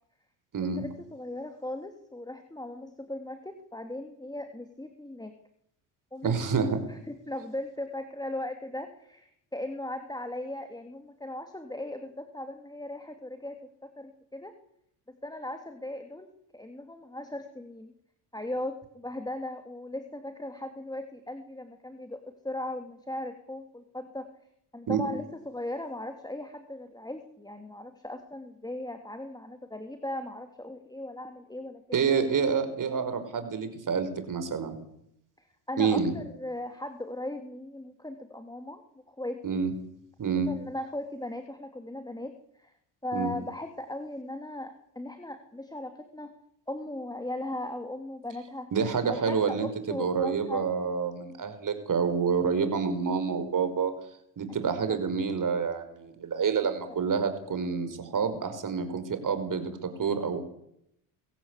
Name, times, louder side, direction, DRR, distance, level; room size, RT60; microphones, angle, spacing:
voice 1, 0.6-5.3 6.1-6.4 6.9-14.5 15.1-16.3 16.5-17.9 18.3-24.3 24.7-31.8 35.4-38.8 39.1-39.6 40.5-42.7 43.0-46.3 46.7-48.7 49.1-50.6 54.6-55.0 56.9-57.0, left 1 dB, 10° left, 6 dB, 2.9 m, -38 dB
voice 2, 6.2-6.8 24.9-25.0 31.9-34.8 35.8-36.1 39.4-39.7 40.2-40.5 43.1-43.3 48.7-53.9 54.4-60.4, right 6 dB, 45° right, 9 dB, 5.3 m, -28 dB
23.5 x 16.0 x 8.3 m, 0.74 s
supercardioid pair, 70°, 44 cm